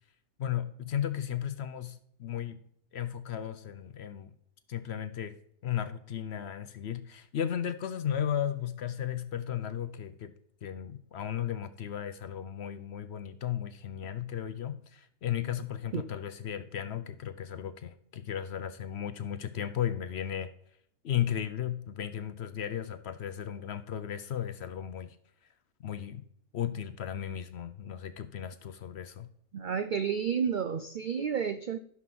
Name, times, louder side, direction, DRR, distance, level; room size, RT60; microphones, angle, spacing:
voice 1, 0.4-2.6 2.9-4.3 4.7-5.3 5.6-10.3 10.6-20.5 21.0-25.2 25.8-26.2 26.5-29.3, left 10 dB, 60° left, 0.7 m, -35 dB
voice 2, 29.5-31.8, right 7 dB, 80° right, 0.4 m, -31 dB
12.5 x 5.7 x 5.9 m
omnidirectional pair, 1.5 m